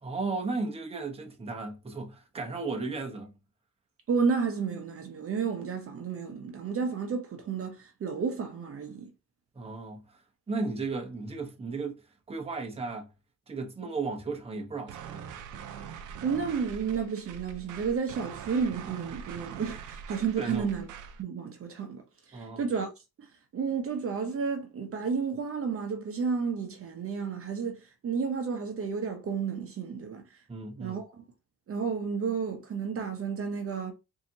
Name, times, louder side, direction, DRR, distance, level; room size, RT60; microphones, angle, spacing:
voice 1, 0.0-3.3 9.6-10.0 10.5-12.0 12.3-13.1 13.5-15.3 20.4-20.7 22.3-22.7 30.5-31.0, right 3 dB, 20° right, 0.9 m, -35 dB
voice 2, 4.1-9.1 16.2-20.9 21.2-22.9 23.2-23.3 23.5-30.4 30.8-31.2 31.7-33.9, right 5 dB, 45° right, 0.8 m, -32 dB
sound 1, 14.9-21.2, right 8 dB, 85° right, 0.6 m, -43 dB
4.1 x 2.8 x 2.7 m
cardioid pair, 90°, 30 cm